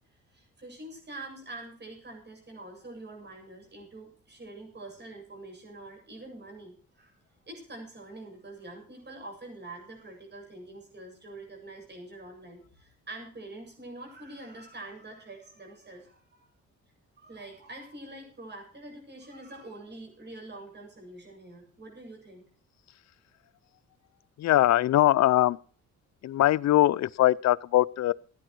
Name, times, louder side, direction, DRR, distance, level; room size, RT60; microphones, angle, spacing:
voice 1, 0.3-7.1 7.5-16.5 17.2-22.5, right 2 dB, 35° right, 7.9 m, -45 dB
voice 2, 24.4-25.6 26.2-28.1, left 14 dB, 60° left, 0.6 m, -22 dB
17.0 x 10.0 x 4.6 m
cardioid pair, 90°, 30 cm